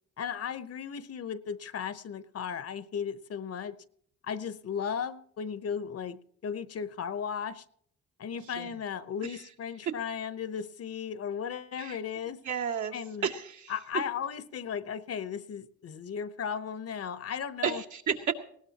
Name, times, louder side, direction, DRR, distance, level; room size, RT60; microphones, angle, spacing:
voice 1, 0.2-3.8 4.2-7.6 8.2-12.4 12.9-13.3 13.7-17.8, left 7 dB, 55° left, 1.0 m, -36 dB
voice 2, 12.4-13.0 13.2-13.7 17.6-18.3, right 7 dB, 70° right, 2.2 m, -32 dB
20.0 x 17.5 x 2.9 m
cardioid pair, 90°, 30 cm